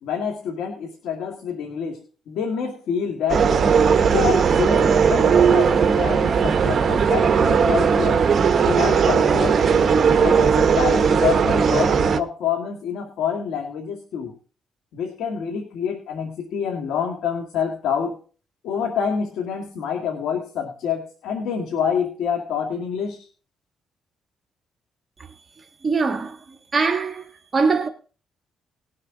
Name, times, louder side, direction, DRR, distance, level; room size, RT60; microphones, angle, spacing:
voice 1, 0.0-3.7 4.1-8.3 8.6-9.6 10.2-14.3 14.9-18.2 18.6-23.3, left 7 dB, 80° left, 1.9 m, -27 dB
sound 1, 3.3-12.2, right 6 dB, 45° right, 1.1 m, -18 dB
voice 2, 25.8-26.4 26.7-27.9, right 4 dB, 30° right, 1.4 m, -22 dB
19.5 x 6.7 x 3.9 m
cardioid pair, 90°, 0 cm